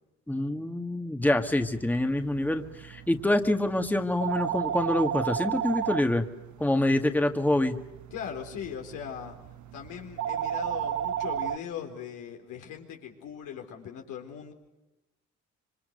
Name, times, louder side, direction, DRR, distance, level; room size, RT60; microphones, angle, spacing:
voice 1, 0.3-6.2 6.6-7.8, left 1 dB, 5° left, 6 dB, 1.9 m, -26 dB
sound 1, 1.2-11.6, right 10 dB, 70° right, 1.1 m, -35 dB
voice 2, 8.1-9.3 9.7-14.5, left 8 dB, 90° left, 2 dB, 4.4 m, -39 dB
27.0 x 24.5 x 6.6 m, 0.99 s
cardioid pair, 90°, 30 cm